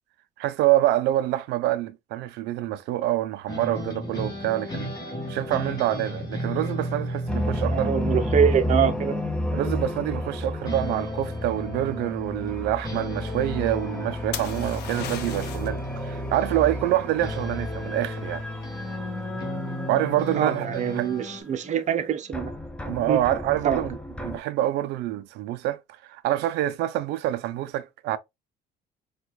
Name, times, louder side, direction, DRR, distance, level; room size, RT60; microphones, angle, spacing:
voice 1, 0.4-4.9 5.3-8.0 9.5-18.4 19.9-21.1 22.9-28.2, right 14 dB, 80° right, 0.4 m, -26 dB
sound 1, 3.5-10.4 10.7-21.4, left 1 dB, 25° left, 1.4 m, -35 dB
sound 2, 7.3-22.0 22.3-24.4, left 1 dB, 5° left, 0.6 m, -32 dB
voice 2, 7.7-9.1 20.4-22.5 23.1-23.2 23.6-23.8, right 8 dB, 45° right, 0.6 m, -24 dB
sound 3, 14.3-15.8 19.5-19.9, left 9 dB, 80° left, 0.6 m, -36 dB
4.4 x 2.3 x 2.3 m
cardioid pair, 110°, 17 cm